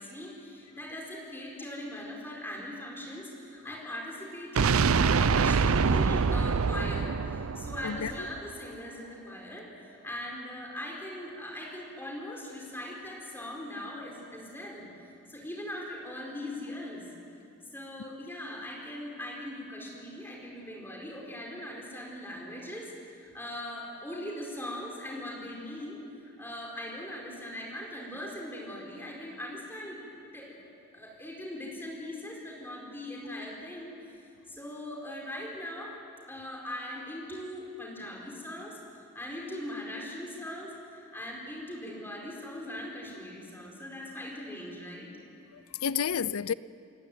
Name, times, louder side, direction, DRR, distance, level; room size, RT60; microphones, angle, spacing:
voice 1, 0.0-7.1 7.5-14.9 15.3-17.0 17.7-22.9 23.2-26.0 26.4-30.0 30.3-30.6 30.9-33.9 34.5-36.0 36.3-38.8 39.1-45.1, left 1 dB, 10° left, 4.6 m, -40 dB
sound 1, 4.5-8.5, right 5 dB, 75° right, 0.6 m, -25 dB
voice 2, 7.8-8.3 45.5-46.5, left 7 dB, 80° left, 0.5 m, -31 dB
29.0 x 16.5 x 9.3 m
head